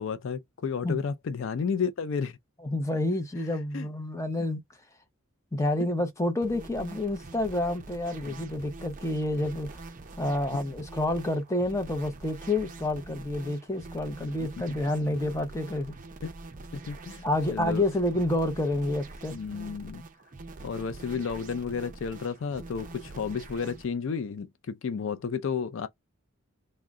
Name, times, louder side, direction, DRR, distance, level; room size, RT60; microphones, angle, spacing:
voice 1, 0.0-2.4 3.7-3.9 8.2-8.3 14.4-14.5 16.2-16.3 16.7-17.2 17.5-17.8 19.3-20.0 20.6-25.9, left 6 dB, 60° left, 0.4 m, -32 dB
voice 2, 2.6-4.6 5.5-9.7 10.2-16.0 17.2-19.3, left 1 dB, 15° left, 0.6 m, -29 dB
sound 1, 6.4-23.9, right 3 dB, 35° right, 0.5 m, -45 dB
3.6 x 2.1 x 3.5 m
head